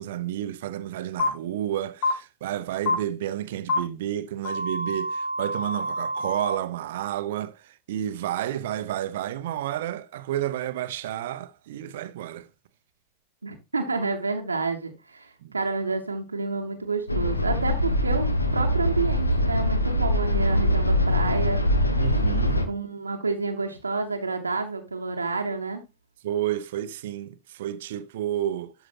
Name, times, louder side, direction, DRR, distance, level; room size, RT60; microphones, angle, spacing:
voice 1, 0.0-12.5 15.4-15.5 21.9-22.6 26.2-28.7, right 12 dB, 55° right, 0.6 m, -31 dB
sound 1, 1.2-1.3 2.0-2.1 2.9-3.0 3.7-3.8 4.4-6.6, left 2 dB, 50° left, 3.4 m, -27 dB
voice 2, 13.4-21.6 22.7-25.8, right 3 dB, 80° right, 1.0 m, -29 dB
sound 2, 17.1-22.7, left 1 dB, 80° left, 1.1 m, -23 dB
12.5 x 4.9 x 2.9 m
figure-of-eight pair, 90°, 0 cm